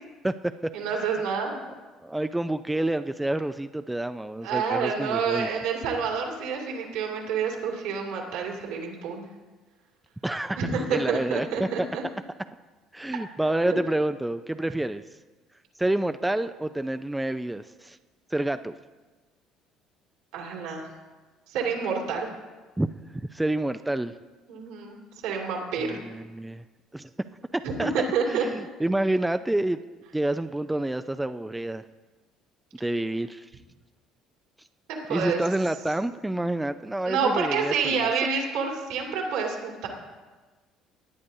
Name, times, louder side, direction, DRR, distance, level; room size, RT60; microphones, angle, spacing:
voice 1, 0.7-1.6 4.4-9.3 10.6-12.0 13.7-13.8 20.3-20.9 21.5-22.3 24.5-26.0 27.6-28.4 34.9-35.4 37.0-39.9, right 5 dB, 75° right, 0 dB, 2.5 m, -28 dB
voice 2, 2.0-5.5 10.2-11.9 12.9-15.0 15.8-18.0 18.3-18.7 22.8-24.1 25.8-26.6 26.9-27.1 27.5-27.9 28.3-29.8 30.1-31.8 32.8-33.5 35.1-38.1, right 1 dB, 10° right, 10 dB, 0.5 m, -28 dB
19.0 x 9.6 x 2.7 m, 1.3 s
hypercardioid pair, 60°, 0 cm